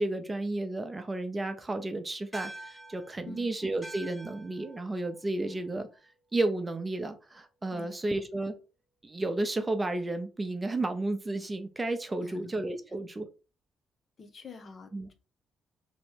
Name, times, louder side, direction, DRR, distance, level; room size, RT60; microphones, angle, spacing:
voice 1, 0.0-5.9 6.3-8.5 9.0-13.3 14.9-15.1, right 2 dB, 20° right, 7 dB, 0.8 m, -32 dB
sound 1, 2.3-7.0, right 1 dB, 10° left, 1.2 m, -48 dB
voice 2, 7.7-8.2 12.2-12.5 14.2-15.1, left 4 dB, 45° left, 7 dB, 0.8 m, -47 dB
3.1 x 3.1 x 4.6 m, 0.32 s
cardioid pair, 90°, 0 cm